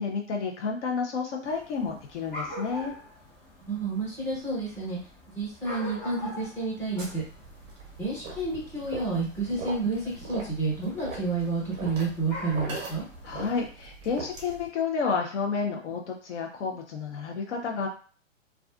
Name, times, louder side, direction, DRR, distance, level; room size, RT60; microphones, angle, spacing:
voice 1, 0.0-2.9 13.2-17.9, left 5 dB, 60° left, 1 dB, 0.6 m, -30 dB
sound 1, 1.4-13.7, left 1 dB, 35° left, 0.9 m, -45 dB
voice 2, 3.6-5.0 5.3-7.2 8.0-13.0, right 3 dB, 5° left, -7 dB, 1.0 m, -30 dB
sound 2, 7.0-14.7, right 3 dB, 25° right, 0.7 m, -41 dB
2.4 x 2.4 x 2.3 m, 0.40 s
hypercardioid pair, 130°, 39 cm